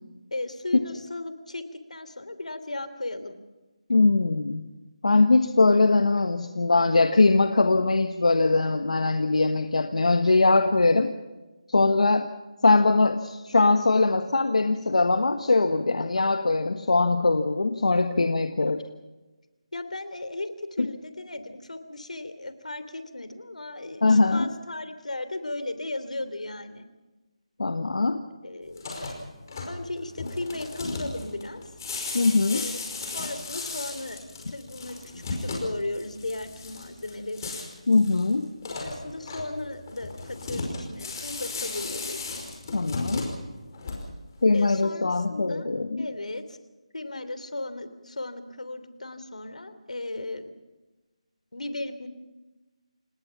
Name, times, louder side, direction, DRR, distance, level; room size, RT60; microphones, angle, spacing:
voice 1, 0.3-3.4 19.7-26.8 28.4-28.9 29.7-31.7 32.5-32.8 33.1-34.2 34.5-35.0 35.4-37.5 38.7-42.2 44.5-45.7 46.0-46.6 46.9-50.5 51.5-52.1, left 2 dB, 90° left, 11 dB, 3.1 m, -36 dB
voice 2, 3.9-4.6 5.0-11.1 11.7-12.3 12.6-18.8 24.0-24.5 27.6-28.2 32.1-32.7 37.9-38.5 42.7-43.3 44.4-46.1, left 3 dB, 70° left, 7 dB, 1.5 m, -21 dB
sound 1, 28.7-44.4, left 3 dB, 30° left, 5.1 m, -36 dB
28.0 x 19.0 x 5.8 m, 1.1 s
figure-of-eight pair, 170°, 4 cm